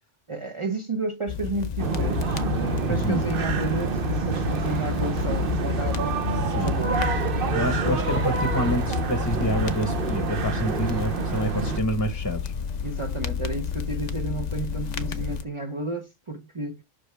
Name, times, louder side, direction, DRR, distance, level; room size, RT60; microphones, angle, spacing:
voice 1, 0.3-7.2 7.8-8.0 12.8-16.8, right 3 dB, 35° right, 0.6 m, -32 dB
sound 1, 1.3-15.4, left 9 dB, 50° left, 0.6 m, -31 dB
sound 2, 1.8-11.8, right 6 dB, 55° right, 0.9 m, -28 dB
voice 2, 2.9-3.3 6.5-6.7 7.5-12.5, equal, 15° left, 0.9 m, -28 dB
sound 3, 4.8-4.9 5.2-5.5 5.9-6.0 6.2-6.3 7.0-15.4, left 5 dB, 85° left, 0.9 m, -36 dB
5.7 x 5.0 x 3.3 m
omnidirectional pair, 1.2 m